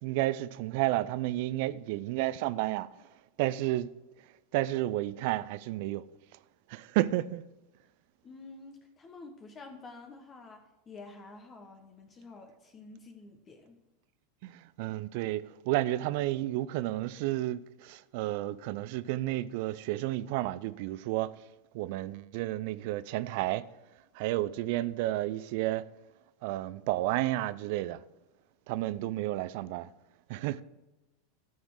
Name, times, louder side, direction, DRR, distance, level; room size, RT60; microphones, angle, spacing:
voice 1, 0.0-2.9 3.4-3.9 4.5-6.1 6.7-7.4 14.4-21.3 21.7-23.6 24.1-25.9 26.4-28.0 28.7-29.9 30.3-30.6, right 16 dB, 60° right, 0.4 m, -31 dB
voice 2, 8.2-13.8, left 3 dB, 30° left, 1.2 m, -49 dB
13.5 x 6.3 x 4.8 m
hypercardioid pair, 90°, 0 cm